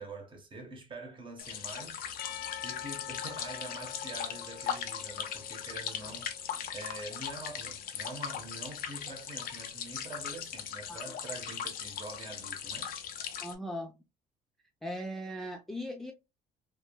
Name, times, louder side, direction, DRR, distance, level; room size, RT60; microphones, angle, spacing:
voice 1, 0.0-2.0 2.6-6.3 6.7-12.9, right 2 dB, 30° right, 1.1 m, -45 dB
sound 1, 1.4-13.5, left 8 dB, 60° left, 0.6 m, -39 dB
Percussion / Church bell, 2.2-6.4, left 10 dB, 90° left, 0.8 m, -45 dB
voice 2, 13.4-13.9 14.8-16.1, equal, ahead, 0.4 m, -38 dB
3.4 x 2.2 x 2.2 m
cardioid pair, 110°, 17 cm